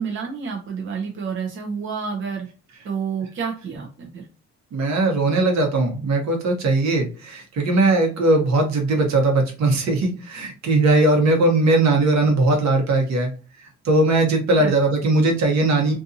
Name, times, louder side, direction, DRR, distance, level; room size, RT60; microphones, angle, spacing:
voice 1, 0.0-2.5 2.8-4.3 14.6-14.7, right 6 dB, 40° right, 0 dB, 0.7 m, -29 dB
voice 2, 4.7-13.3 13.8-15.9, right 2 dB, 65° right, 2 dB, 1.1 m, -19 dB
2.5 x 2.5 x 2.6 m, 0.35 s
cardioid pair, 90°, 30 cm